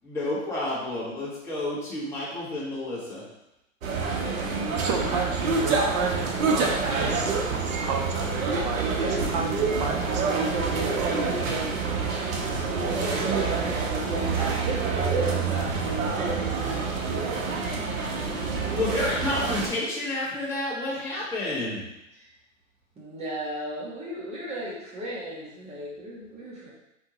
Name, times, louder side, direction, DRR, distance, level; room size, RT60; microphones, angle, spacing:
voice 1, 0.0-3.2 18.7-21.8, left 2 dB, 5° left, -9 dB, 1.5 m, -30 dB
sound 1, 3.8-19.7, right 4 dB, 85° right, 1.0 m, -27 dB
voice 2, 4.7-10.5, right 5 dB, 35° right, 3 dB, 0.4 m, -32 dB
voice 3, 12.8-16.1 16.4-16.7 22.1-22.3 22.9-26.7, right 1 dB, 15° right, -6 dB, 1.2 m, -36 dB
4.5 x 3.5 x 3.0 m, 0.87 s
hypercardioid pair, 130°, 40 cm